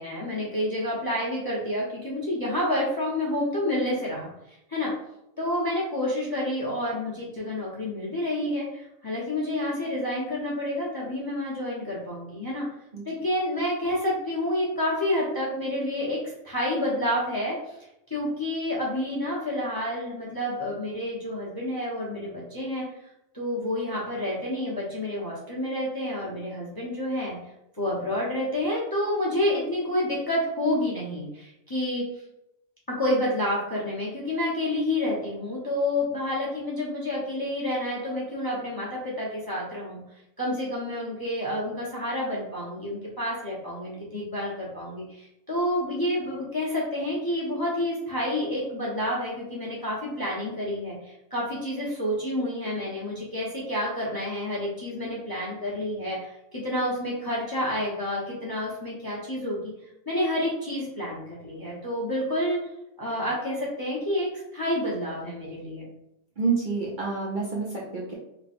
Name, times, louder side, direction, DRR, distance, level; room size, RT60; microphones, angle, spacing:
voice 1, 0.0-4.9 5.4-12.7 13.0-16.2 16.4-17.6 18.1-22.8 23.3-27.4 27.8-32.1 32.9-40.0 40.4-59.7 60.1-62.6 63.0-65.9, left 1 dB, 20° left, -5 dB, 0.7 m, -29 dB
voice 2, 66.4-68.1, right 4 dB, 45° right, -5 dB, 0.8 m, -28 dB
3.3 x 2.2 x 4.2 m, 0.84 s
omnidirectional pair, 1.3 m